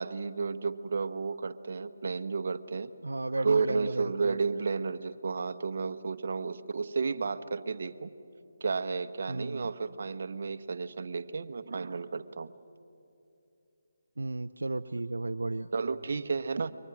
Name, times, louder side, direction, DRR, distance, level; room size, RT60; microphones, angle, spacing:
voice 1, 0.0-2.9 3.4-8.1 8.6-12.5 15.7-16.7, right 4 dB, 60° right, 11 dB, 1.0 m, -32 dB
voice 2, 3.0-4.4 9.3-9.7 14.2-15.7, right 2 dB, 85° right, 10 dB, 0.5 m, -34 dB
29.5 x 23.5 x 6.0 m, 2.8 s
figure-of-eight pair, 155°, 0 cm